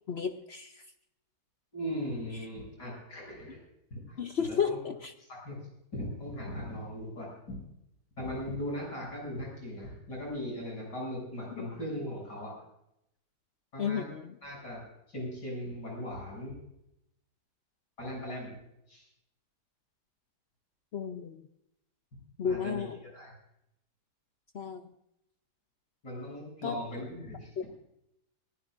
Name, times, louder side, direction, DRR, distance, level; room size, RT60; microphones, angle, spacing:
voice 1, 0.1-0.8 2.3-2.5 4.2-5.1 11.6-11.7 13.8-14.4 20.9-21.5 22.4-23.0 24.5-24.9 26.6-26.8 27.6-27.7, left 7 dB, 55° left, 8 dB, 0.7 m, -33 dB
voice 2, 1.7-3.6 3.9-4.2 4.5-4.8 5.4-5.6 5.9-7.6 8.2-12.5 13.7-14.0 14.4-14.8 15.1-16.6 18.0-18.6 18.9-19.0 22.4-22.8 23.1-23.3 26.0-27.5, equal, 85° left, -3 dB, 8.2 m, -38 dB
23.0 x 15.5 x 2.5 m, 0.82 s
omnidirectional pair, 1.8 m